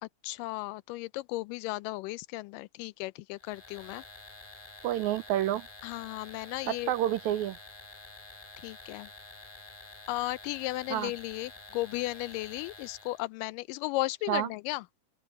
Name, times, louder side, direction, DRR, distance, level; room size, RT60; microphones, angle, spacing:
voice 1, 0.0-4.0 5.8-6.9 8.6-9.1 10.1-14.9, left 19 dB, 85° left, 2.2 m, -35 dB
sound 1, 3.4-13.3, left 2 dB, 10° left, 2.1 m, -49 dB
voice 2, 4.8-5.7 6.7-7.6 10.9-11.1 14.3-14.5, right 13 dB, 80° right, 1.7 m, -29 dB
omnidirectional pair, 3.8 m